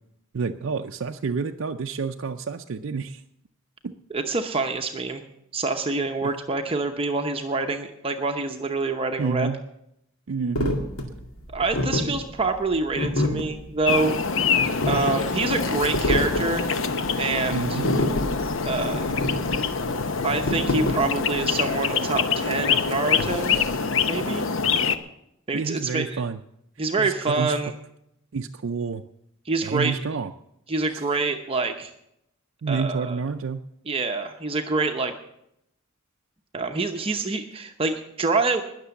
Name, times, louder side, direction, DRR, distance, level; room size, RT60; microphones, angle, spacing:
voice 1, 0.3-3.2 3.8-3.9 6.2-6.3 9.2-9.6 10.3-10.8 17.5-17.9 25.5-26.4 27.0-27.5 28.3-29.0 29.6-30.3 30.9-31.0 32.6-33.6, right 5 dB, 65° right, 5 dB, 0.5 m, -29 dB
voice 2, 4.1-5.2 5.5-9.5 11.5-14.1 14.9-16.7 17.2-17.8 18.6-19.2 20.2-23.6 24.0-24.5 25.5-26.2 26.8-27.7 29.5-30.0 30.7-31.9 32.7-33.2 33.9-35.1 36.5-38.6, right 3 dB, 25° right, 5 dB, 0.8 m, -26 dB
sound 1, 10.6-21.5, left 1 dB, 85° left, 2.1 m, -27 dB
sound 2, 13.8-25.0, left 5 dB, 65° left, 0.8 m, -25 dB
20.0 x 6.8 x 7.0 m, 0.80 s
head